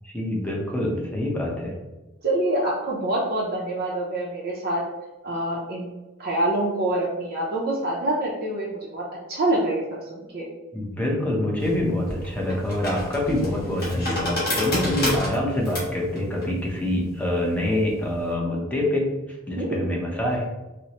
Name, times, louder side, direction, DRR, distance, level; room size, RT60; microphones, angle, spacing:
voice 1, 0.0-1.8 10.7-20.5, left 1 dB, 5° left, -2 dB, 0.7 m, -26 dB
voice 2, 2.2-4.8 5.2-5.9 6.2-9.0 9.3-9.8 10.1-10.5 19.6-19.7, right 1 dB, 50° right, -4 dB, 0.5 m, -25 dB
sound 1, 11.6-18.3, left 1 dB, 50° left, 1.4 m, -31 dB
4.3 x 2.0 x 2.8 m, 1.1 s
head